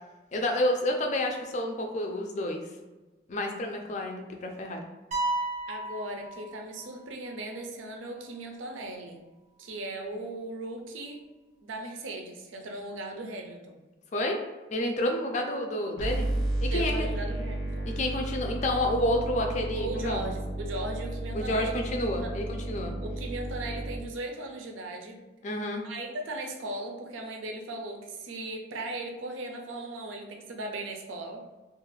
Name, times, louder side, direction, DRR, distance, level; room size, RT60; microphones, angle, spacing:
voice 1, 0.3-2.7 3.3-4.9 14.1-14.4 14.7-16.3 16.6-17.1 17.9-20.3 21.3-22.9 25.4-25.8, left 1 dB, 40° left, 3 dB, 0.4 m, -29 dB
sound 1, 5.1-7.0, right 2 dB, 35° right, 0.5 m, -33 dB
voice 2, 5.7-9.2 9.6-11.2 11.6-13.8 16.7-17.9 19.7-21.8 22.2-22.4 23.0-25.2 25.8-31.4, right 2 dB, 85° right, 3 dB, 0.5 m, -37 dB
sound 2, 16.0-24.0, right 1 dB, 85° left, 0.7 m, -33 dB
2.5 x 2.3 x 3.1 m, 1.2 s
head